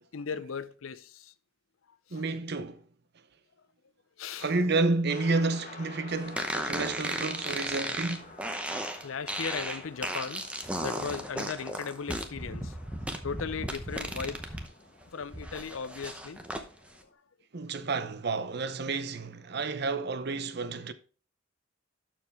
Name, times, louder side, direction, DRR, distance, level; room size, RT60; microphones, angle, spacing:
voice 1, 0.1-1.3 2.1-2.2 4.2-4.7 8.6-8.7 9.0-10.5 10.8-12.7 13.2-14.6 15.1-16.4, left 6 dB, 90° left, 0.6 m, -37 dB
voice 2, 2.1-2.8 4.4-8.4 17.5-20.9, right 3 dB, 55° right, 0.7 m, -30 dB
sound 1, 5.1-17.1, left 3 dB, 40° left, 1.3 m, -51 dB
sound 2, 6.4-14.7 15.0-16.6, right 1 dB, 5° right, 0.8 m, -35 dB
12.5 x 4.7 x 3.5 m
head